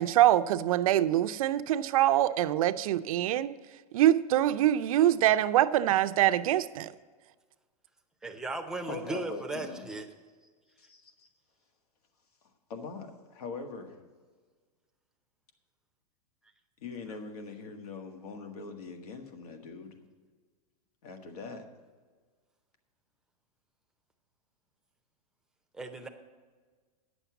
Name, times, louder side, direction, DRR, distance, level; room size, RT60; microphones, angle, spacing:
voice 1, 0.0-3.5 3.9-6.9, right 13 dB, 60° right, 13 dB, 0.5 m, -24 dB
voice 2, 8.2-10.1 25.7-26.1, right 2 dB, 5° right, 4 dB, 0.7 m, -36 dB
voice 3, 8.9-9.8 10.8-11.3 12.7-14.0 16.8-20.0 21.0-21.7, left 4 dB, 75° left, 6 dB, 1.7 m, -42 dB
9.9 x 7.1 x 7.0 m, 1.5 s
supercardioid pair, 155°, 20 cm